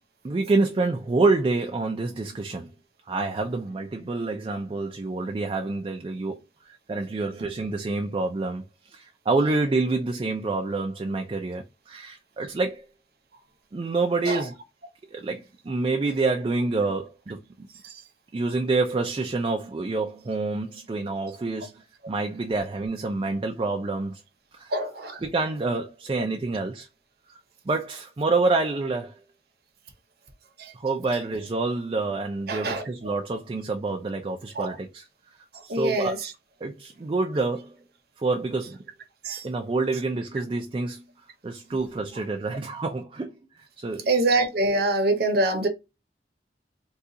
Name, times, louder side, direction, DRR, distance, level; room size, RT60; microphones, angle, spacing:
voice 1, 0.2-2.7 3.1-6.4 6.6-12.9 13.7-14.6 15.1-17.7 18.3-24.2 24.5-24.7 25.2-26.9 27.7-29.2 30.7-35.0 35.6-36.2 36.6-37.8 38.2-38.8 39.4-41.0 41.4-44.1, right 3 dB, 30° right, 0.3 m, -27 dB
voice 2, 24.7-25.2 30.6-30.7 32.5-32.9 34.5-34.7 35.7-36.3 39.2-39.5 44.1-45.7, right 2 dB, 60° right, 0.8 m, -25 dB
3.6 x 2.4 x 2.7 m
head